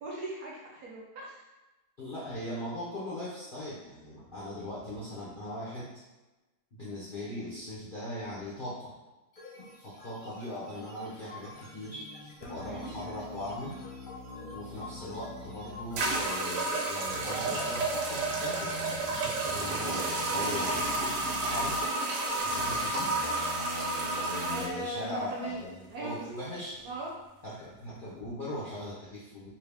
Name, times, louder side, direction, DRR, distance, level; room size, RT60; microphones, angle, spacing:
voice 1, 0.0-1.4 12.4-12.9 24.5-26.3 26.8-27.1, right 1 dB, 65° right, -3 dB, 1.0 m, -39 dB
voice 2, 2.0-5.9 6.7-8.9 9.8-12.1 12.5-13.8 14.5-20.8 21.4-21.8 22.4-23.3 24.3-26.8 27.4-29.5, left 1 dB, 55° left, -8 dB, 0.5 m, -40 dB
sound 1, 9.3-17.3, left 2 dB, 35° left, 0.9 m, -49 dB
sound 2, 11.4-24.7, left 3 dB, 75° left, 1.0 m, -45 dB
sound 3, 15.1-15.2 16.0-24.7, right 2 dB, 85° right, 1.3 m, -31 dB
2.8 x 2.7 x 3.3 m, 1.1 s
omnidirectional pair, 1.9 m